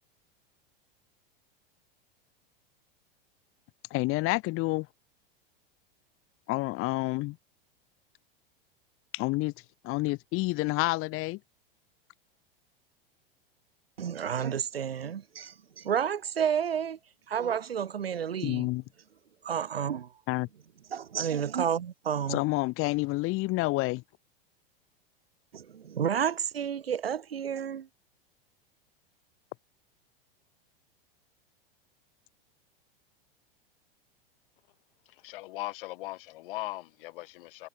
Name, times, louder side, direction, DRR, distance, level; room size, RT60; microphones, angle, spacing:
voice 1, 3.9-4.9 6.5-7.4 9.1-9.5 9.8-11.4 18.4-18.8 20.3-20.5 22.3-24.0, left 22 dB, 45° left, 3.2 m, -28 dB
voice 2, 14.0-17.0 17.3-18.7 19.4-20.1 20.9-22.4 25.5-27.9, right 8 dB, 90° right, 2.4 m, -30 dB
voice 3, 35.2-37.7, left 19 dB, 65° left, 4.9 m, -39 dB
hypercardioid pair, 100°, 29 cm